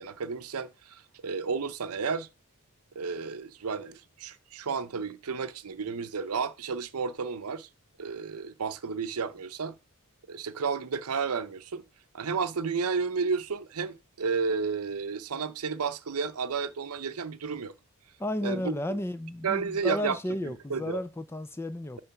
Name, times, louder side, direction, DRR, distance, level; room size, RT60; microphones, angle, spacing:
voice 1, 0.0-2.3 2.9-7.7 8.0-9.7 10.3-11.8 12.1-17.7 18.4-18.7 19.4-20.2 20.4-21.0, right 5 dB, 85° right, 0.7 m, -32 dB
voice 2, 18.2-22.0, left 1 dB, 10° left, 0.4 m, -33 dB
6.8 x 3.2 x 5.8 m
head